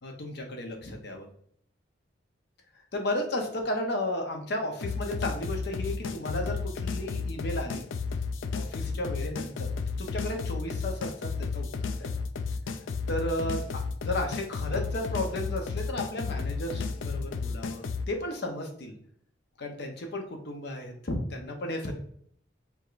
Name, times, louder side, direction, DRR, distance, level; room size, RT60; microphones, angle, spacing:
voice 1, 0.0-1.3 2.9-7.8 8.5-9.7 10.0-11.7 12.0-12.2 13.1-18.9 19.6-22.0, left 1 dB, 60° left, 3 dB, 0.8 m, -34 dB
sound 1, 4.8-18.1, left 4 dB, 90° left, 0.4 m, -33 dB
4.8 x 3.6 x 2.5 m, 0.63 s
head